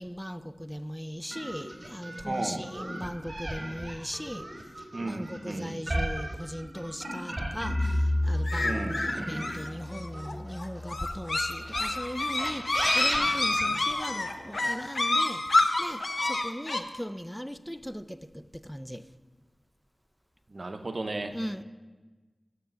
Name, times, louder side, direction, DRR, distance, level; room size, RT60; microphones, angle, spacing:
voice 1, 0.0-4.5 5.0-19.0 21.3-21.6, equal, 5° left, 0.4 m, -38 dB
sound 1, 1.3-8.1 8.5-10.9 11.6-14.2, right 1 dB, 30° right, 2.2 m, -36 dB
voice 2, 2.3-2.7 4.9-5.8 8.6-9.0 20.5-21.4, right 2 dB, 55° right, 0.7 m, -34 dB
Bowed string instrument, 7.6-12.0, left 1 dB, 35° left, 1.7 m, -32 dB
sound 2, 8.4-16.8, left 2 dB, 60° left, 0.6 m, -28 dB
6.8 x 6.7 x 7.4 m
wide cardioid pair, 60°, 0 cm